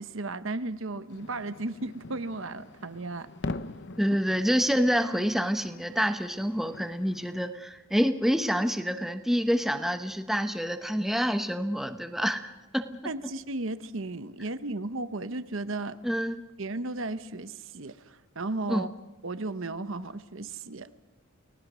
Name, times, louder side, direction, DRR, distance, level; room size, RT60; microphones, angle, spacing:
voice 1, 0.0-3.3 13.0-16.0 16.6-18.9 19.2-20.9, right 2 dB, 60° right, 12 dB, 1.0 m, -35 dB
sound 1, 1.1-7.5, left 2 dB, 55° left, 0.8 m, -43 dB
voice 2, 4.0-12.9 16.0-16.4 18.7-18.8, equal, ahead, 8 dB, 1.0 m, -27 dB
30.0 x 19.0 x 6.2 m, 1.0 s
head